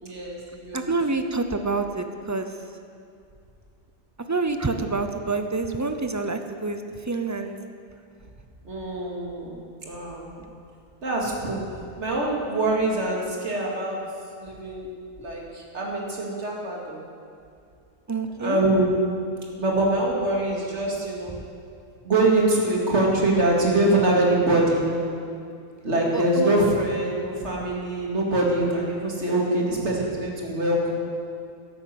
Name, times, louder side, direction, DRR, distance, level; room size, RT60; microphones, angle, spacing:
voice 1, 0.0-0.9 8.6-10.3 11.0-11.6 12.0-14.0 14.4-14.9 15.2-17.0 18.4-18.9 19.6-21.4 22.0-24.8 25.8-30.9, right 2 dB, 60° right, -2 dB, 2.5 m, -24 dB
voice 2, 0.7-2.5 4.3-7.6 18.1-18.6 26.1-26.5, right 3 dB, 25° right, 7 dB, 0.4 m, -27 dB
11.5 x 9.6 x 7.6 m, 2.4 s
omnidirectional pair, 1.3 m